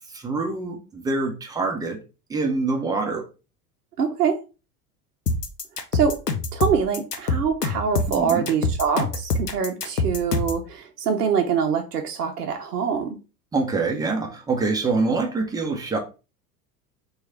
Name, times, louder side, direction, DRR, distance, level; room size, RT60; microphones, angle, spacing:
voice 1, 0.1-2.0 2.3-3.3 8.1-8.5 13.5-16.0, right 3 dB, 10° right, 0.4 m, -25 dB
voice 2, 4.0-4.4 5.9-6.2 6.5-13.2, right 6 dB, 80° right, 0.6 m, -24 dB
sound 1, 5.3-10.6, left 3 dB, 90° left, 0.5 m, -25 dB
3.0 x 2.3 x 3.8 m
figure-of-eight pair, 75°, 47 cm